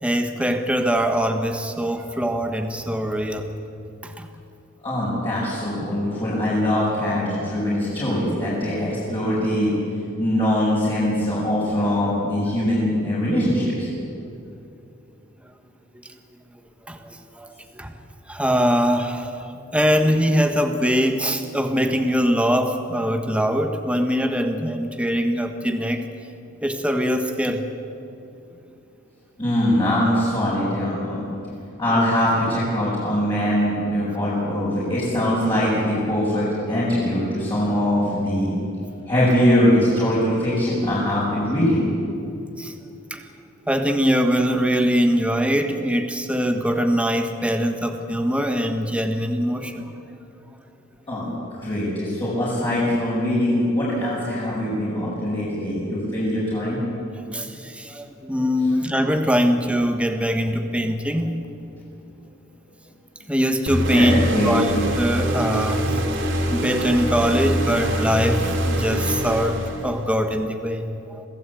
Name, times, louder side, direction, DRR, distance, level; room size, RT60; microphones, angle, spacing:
voice 1, 0.0-3.5 4.0-4.3 14.3-14.4 16.9-17.9 18.3-26.0 26.6-27.6 42.6-42.7 43.1-43.2 43.7-49.9 57.2-61.4 63.3-66.0 66.5-71.2, equal, 5° right, 5 dB, 1.4 m, -22 dB
voice 2, 4.8-9.7 10.2-13.9 29.4-31.2 31.8-38.6 39.1-41.8 51.1-56.8 63.9-64.5, left 1 dB, 25° left, -9 dB, 6.8 m, -22 dB
sound 1, 63.7-70.1, right 1 dB, 65° right, 3.5 m, -24 dB
27.0 x 17.0 x 8.5 m, 2.7 s
head